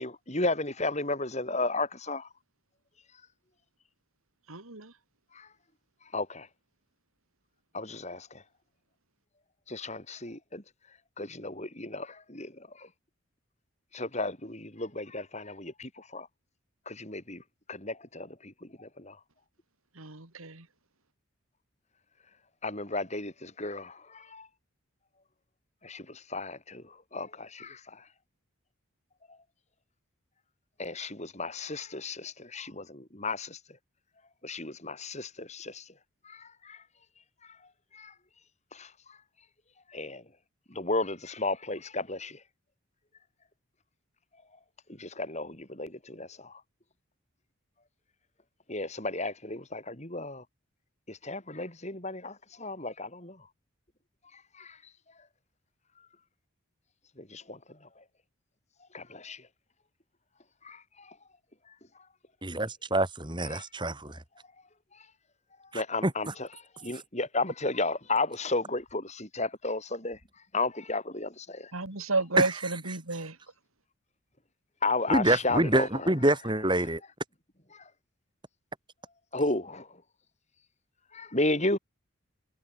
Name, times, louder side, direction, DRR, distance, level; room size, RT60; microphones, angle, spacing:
voice 1, 0.0-2.3 5.3-5.5 6.1-6.5 7.7-8.4 9.7-10.6 11.2-12.9 13.9-16.3 16.9-17.4 17.7-18.5 18.8-19.2 22.6-24.5 25.8-28.0 30.8-33.6 34.4-35.8 36.2-36.8 37.9-38.1 38.7-38.9 39.9-40.2 40.7-42.4 45.0-46.6 48.7-50.4 51.1-53.4 54.3-54.8 57.2-57.6 58.9-59.4 60.6-61.1 63.5-63.6 65.7-66.5 66.8-70.2 70.5-71.7 74.8-76.1 77.7-77.8 79.3-79.9 81.1-81.8, left 2 dB, 30° left, 5.6 m, -34 dB
voice 2, 4.5-4.9 20.0-20.7 71.7-73.4, right 3 dB, 85° right, 3.6 m, -31 dB
voice 3, 62.4-64.1 66.0-66.1 72.4-72.5 75.1-77.0, right 1 dB, 20° right, 3.6 m, -26 dB
head